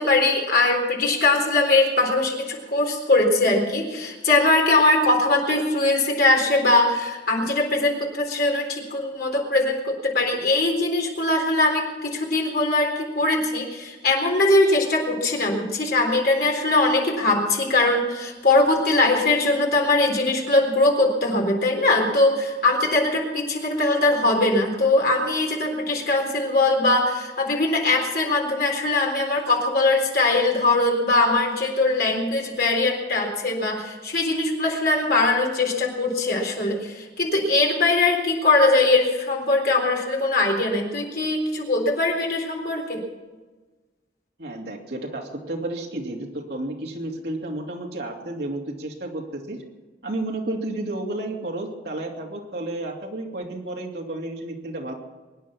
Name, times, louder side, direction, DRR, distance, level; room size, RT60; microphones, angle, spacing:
voice 1, 0.0-43.0, left 2 dB, 55° left, 0 dB, 3.9 m, -21 dB
voice 2, 44.4-49.6 50.0-54.9, right 1 dB, 60° right, -1 dB, 2.8 m, -31 dB
23.5 x 10.0 x 6.0 m, 1.3 s
head